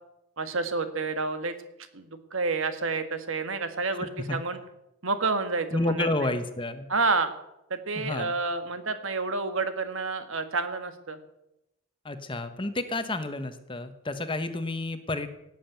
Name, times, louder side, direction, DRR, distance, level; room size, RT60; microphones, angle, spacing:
voice 1, 0.4-1.5 1.9-4.6 5.0-6.1 6.9-7.3 7.7-11.2, right 3 dB, 70° right, 9 dB, 1.6 m, -29 dB
voice 2, 3.9-4.4 5.7-6.9 8.0-8.3 12.0-15.3, left 2 dB, 25° left, 9 dB, 1.1 m, -30 dB
17.5 x 7.6 x 9.0 m, 0.87 s
head